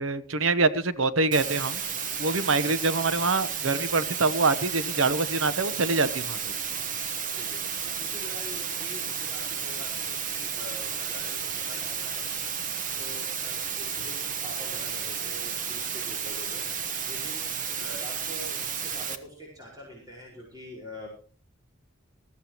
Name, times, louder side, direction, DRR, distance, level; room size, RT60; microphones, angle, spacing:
voice 1, 0.0-1.8 2.2-6.5, right 3 dB, 80° right, 14 dB, 1.0 m, -25 dB
sound 1, 1.3-19.2, right 7 dB, 40° right, 1.2 m, -32 dB
voice 2, 8.0-12.5 13.0-16.6 17.1-17.5 17.8-21.1, left 1 dB, 20° right, -3 dB, 5.0 m, -45 dB
20.0 x 14.0 x 3.0 m, 0.40 s
head